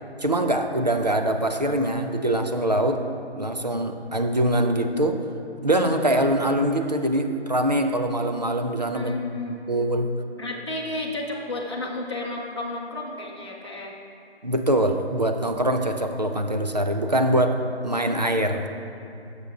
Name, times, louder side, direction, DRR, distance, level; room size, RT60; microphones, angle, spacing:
voice 1, 0.2-3.0 3.3-5.2 5.6-9.1 9.7-10.2 14.4-18.7, right 1 dB, 40° right, 6 dB, 0.5 m, -23 dB
voice 2, 8.9-10.1 10.4-13.9, left 2 dB, 25° left, -5 dB, 0.7 m, -32 dB
11.5 x 6.8 x 3.8 m, 2.7 s
figure-of-eight pair, 175°, 33 cm